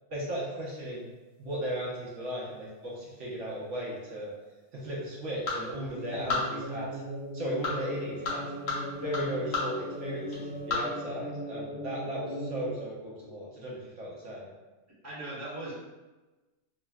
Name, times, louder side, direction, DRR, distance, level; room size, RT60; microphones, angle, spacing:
voice 1, 0.1-1.1 1.4-4.3 4.7-7.0 7.3-8.4 9.0-14.5, equal, 75° right, -6 dB, 1.2 m, -36 dB
sound 1, 0.6-11.0, left 3 dB, 80° left, 1.4 m, -38 dB
sound 2, 5.9-12.7, equal, 55° left, 0.6 m, -39 dB
sound 3, 7.6-11.8, right 1 dB, 60° right, 0.5 m, -52 dB
voice 2, 15.0-15.7, right 1 dB, 15° right, -8 dB, 0.8 m, -39 dB
3.7 x 2.1 x 2.3 m, 1.1 s
omnidirectional pair, 1.3 m